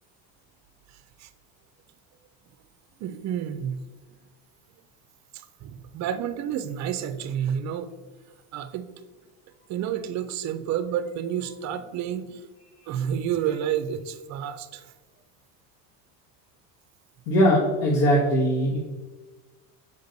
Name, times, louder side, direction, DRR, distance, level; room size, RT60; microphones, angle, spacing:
voice 1, 3.0-3.8 5.3-7.9 8.5-8.9 9.7-12.4 12.9-14.8, right 9 dB, 40° right, 11 dB, 0.4 m, -30 dB
voice 2, 17.3-18.8, equal, 90° left, -4 dB, 1.5 m, -20 dB
6.8 x 5.2 x 3.9 m, 1.3 s
cardioid pair, 150°, 46 cm